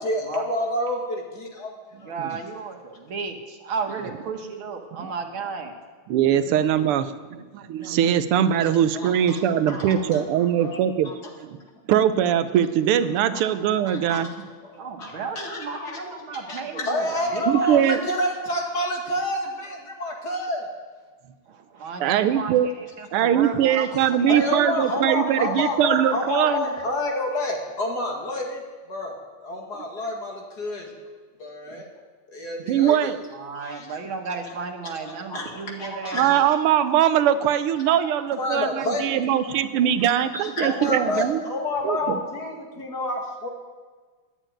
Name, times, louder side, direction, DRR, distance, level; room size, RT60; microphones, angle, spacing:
voice 1, 0.0-1.7 2.0-2.2 8.6-9.4 9.7-10.8 11.0-11.2 13.3-13.4 13.8-14.3 14.6-20.6 23.7-23.9 24.3-28.6 28.9-29.2 29.4-30.9 31.4-31.9 32.3-33.1 33.5-33.9 35.0-36.4 37.9-39.1 39.4-39.6 40.0-43.5, left 1 dB, 50° left, 0 dB, 2.5 m, -29 dB
voice 2, 1.9-5.7 14.8-18.1 21.5-24.3 33.3-36.5, right 5 dB, 70° right, 4 dB, 2.1 m, -34 dB
voice 3, 6.1-11.1 11.4-11.6 11.9-14.5 17.5-18.0 22.0-22.7 23.1-26.7 32.7-33.2 36.1-41.4 41.8-42.2, right 10 dB, 90° right, 12 dB, 1.6 m, -21 dB
11.5 x 8.2 x 9.0 m, 1.4 s
omnidirectional pair, 2.4 m